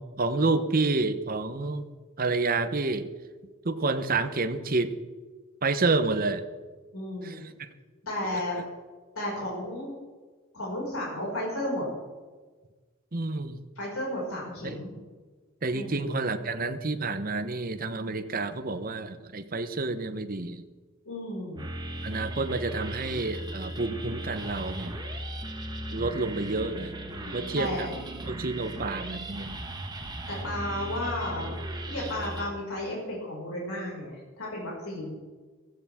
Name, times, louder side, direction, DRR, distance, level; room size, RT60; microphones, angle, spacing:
voice 1, 0.0-1.9 2.2-3.1 3.6-5.0 5.6-6.4 7.2-7.7 8.3-8.4 13.1-13.6 14.6-14.8 15.6-20.6 22.0-25.0 25.9-26.9 27.3-27.9 28.3-29.6, right 3 dB, 40° right, 9 dB, 0.9 m, -29 dB
voice 2, 6.9-7.4 8.1-8.6 9.2-9.9 10.5-11.9 13.8-14.9 15.7-15.9 21.0-21.7 27.1-27.9 30.3-31.6 31.9-35.1, left 1 dB, 75° left, -4 dB, 5.6 m, -33 dB
sound 1, 21.6-32.5, right 1 dB, 20° right, 1.3 m, -37 dB
16.0 x 15.5 x 3.6 m, 1.3 s
head